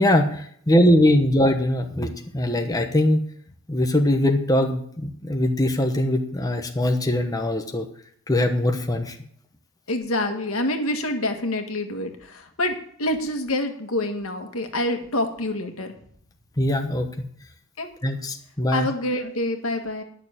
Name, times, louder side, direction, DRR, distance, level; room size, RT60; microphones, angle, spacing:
voice 1, 0.0-3.3 3.7-7.9 8.3-9.2 16.6-17.3 18.0-18.9, left 1 dB, 15° left, 4 dB, 1.0 m, -21 dB
voice 2, 9.9-15.9 17.8-17.9 18.7-20.0, left 1 dB, 85° left, 5 dB, 1.8 m, -27 dB
11.0 x 6.7 x 8.9 m, 0.62 s
head